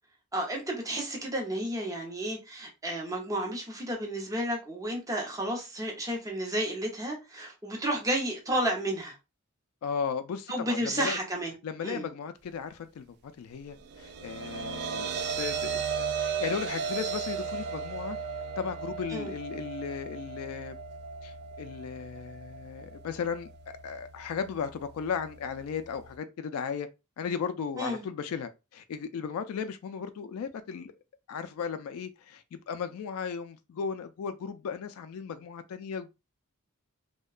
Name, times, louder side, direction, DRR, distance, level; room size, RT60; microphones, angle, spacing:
voice 1, 0.3-9.1 10.5-11.5 11.8-12.0 19.1-19.3 27.8-28.0, right 1 dB, 15° right, 0.7 m, -32 dB
voice 2, 9.8-11.2 11.6-18.2 18.6-20.8 21.2-26.9 27.2-30.9 31.3-36.1, left 6 dB, 70° left, 0.3 m, -36 dB
sound 1, 13.8-26.2, right 6 dB, 50° right, 0.3 m, -36 dB
2.7 x 2.1 x 2.4 m
head